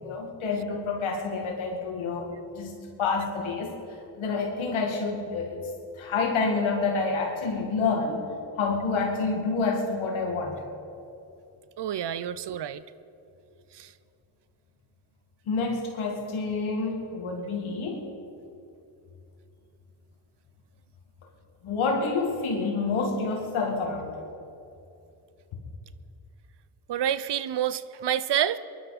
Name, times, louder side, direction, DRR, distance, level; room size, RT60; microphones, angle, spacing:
voice 1, 0.0-3.7 4.1-5.7 6.0-8.3 8.6-10.6 15.5-18.1 21.6-24.2, left 4 dB, 90° left, 1 dB, 2.3 m, -28 dB
voice 2, 11.8-12.8 13.7-13.9 26.9-28.6, right 10 dB, 60° right, 15 dB, 0.7 m, -28 dB
23.0 x 11.5 x 4.3 m, 2.7 s
cardioid pair, 55°, 47 cm